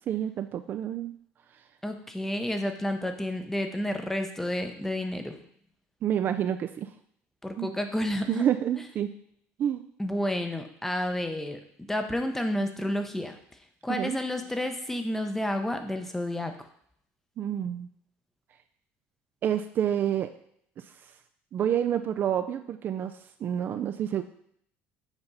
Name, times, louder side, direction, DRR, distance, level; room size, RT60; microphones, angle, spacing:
voice 1, 0.1-1.1 6.0-6.9 7.6-7.7 8.3-9.1 9.6-9.8 13.9-14.2 17.4-17.9 19.4-20.3 21.5-23.1 23.4-24.2, right 10 dB, 40° right, 8 dB, 0.4 m, -28 dB
voice 2, 1.8-5.4 7.4-8.4 10.0-11.6 11.9-13.4 13.8-16.5, left 1 dB, 5° left, 6 dB, 0.7 m, -30 dB
8.1 x 3.5 x 5.4 m, 0.67 s
cardioid pair, 145°, 5 cm